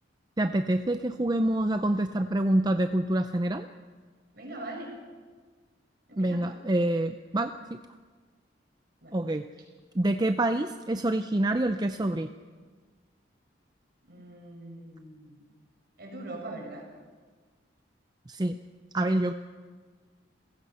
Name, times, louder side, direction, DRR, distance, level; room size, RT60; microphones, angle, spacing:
voice 1, 0.4-3.7 6.2-7.5 9.1-9.4 9.9-12.3 18.3-18.6 18.9-19.3, right 1 dB, 20° right, 8 dB, 0.5 m, -26 dB
voice 2, 4.3-4.9 6.1-6.6 9.0-9.2 14.0-15.4 16.0-16.9, right 2 dB, 55° right, 1 dB, 5.3 m, -41 dB
29.0 x 16.5 x 5.7 m, 1.5 s
head